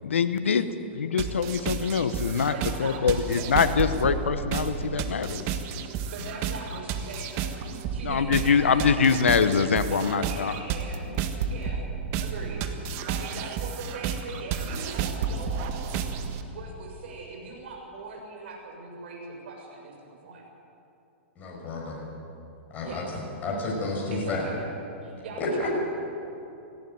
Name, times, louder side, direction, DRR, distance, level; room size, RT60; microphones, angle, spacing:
voice 1, 0.0-2.5 2.8-5.5 8.0-10.5, left 6 dB, 90° left, 11 dB, 1.1 m, -24 dB
sound 1, 1.2-16.4, right 6 dB, 40° right, 1.6 m, -32 dB
voice 2, 2.5-3.7 6.1-7.5 7.9-9.3 9.9-11.1 11.5-11.8 12.2-12.7 13.0-16.0 16.5-20.0 20.2-20.4 22.8-23.0 24.1-24.6 25.0-25.7, right 3 dB, 65° right, 0 dB, 6.9 m, -40 dB
voice 3, 21.4-22.0 22.7-23.0 23.4-24.4 25.4-25.5, left 3 dB, 25° left, -3 dB, 6.2 m, -31 dB
18.0 x 16.5 x 9.3 m, 2.8 s
hypercardioid pair, 130°, 7 cm